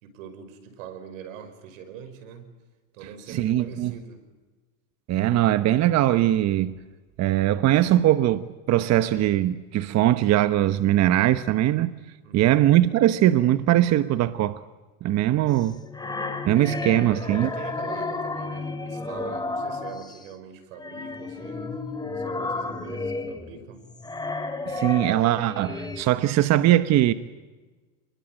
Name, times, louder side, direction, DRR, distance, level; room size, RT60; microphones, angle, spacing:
voice 1, 0.0-2.6 2.9-4.3 12.2-12.7 16.7-21.7 22.1-23.9, right 7 dB, 85° right, 5.5 m, -42 dB
voice 2, 3.3-3.9 5.1-6.8 7.2-11.9 12.3-14.6 15.0-15.8 16.4-17.5 24.7-27.1, right 13 dB, 45° right, 1.1 m, -21 dB
sound 1, 15.5-20.3 20.7-26.0, left 3 dB, 10° left, 2.9 m, -32 dB
29.5 x 21.5 x 9.2 m
supercardioid pair, 120°, 39 cm